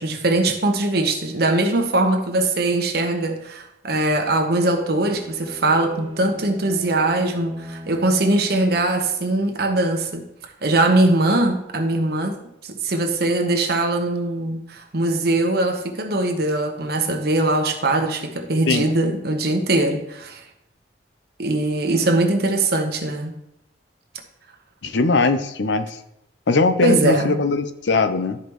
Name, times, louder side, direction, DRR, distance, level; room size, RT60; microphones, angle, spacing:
voice 1, 0.0-10.2 10.6-12.4 12.6-20.4 21.4-23.3 26.8-27.4, right 2 dB, 55° right, 4 dB, 1.0 m, -21 dB
Bowed string instrument, 4.5-9.3, equal, 25° right, 1.3 m, -40 dB
voice 2, 24.8-26.0 26.5-28.4, left 3 dB, 70° left, 10 dB, 0.6 m, -20 dB
12.0 x 5.0 x 3.0 m, 0.85 s
head